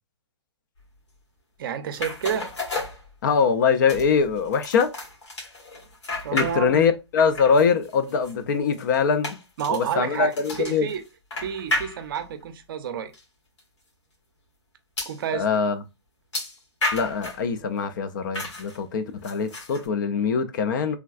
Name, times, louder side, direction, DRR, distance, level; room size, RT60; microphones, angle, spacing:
voice 1, 1.6-2.5 6.2-6.9 9.6-10.3 10.6-11.0 11.4-13.1 15.1-15.5, right 8 dB, 50° right, 0.5 m, -29 dB
sound 1, 1.9-3.5 3.9-6.9 7.2-12.4 13.1-13.2 13.6-13.7 15.0-15.2 16.3-17.5 18.3-18.8 19.2-19.9, left 2 dB, 75° left, 1.5 m, -33 dB
voice 2, 3.2-4.9 6.3-9.4 9.7-10.9 15.3-15.8 16.9-21.0, left 6 dB, 45° left, 0.4 m, -23 dB
3.3 x 2.3 x 2.3 m
hypercardioid pair, 140°, 15 cm